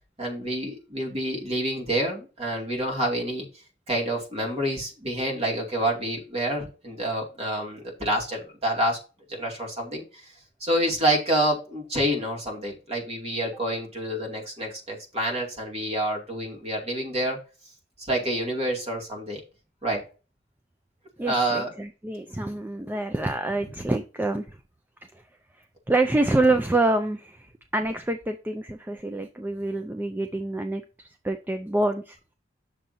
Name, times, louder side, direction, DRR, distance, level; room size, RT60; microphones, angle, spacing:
voice 1, 0.2-3.4 3.9-9.0 9.3-10.0 10.6-17.4 18.0-19.4 19.8-20.0 21.3-21.7, right 1 dB, 35° right, 0 dB, 2.5 m, -27 dB
voice 2, 21.2-24.6 25.1-25.2 25.9-32.2, right 2 dB, 10° right, 6 dB, 0.4 m, -26 dB
8.9 x 6.6 x 2.7 m, 0.33 s
head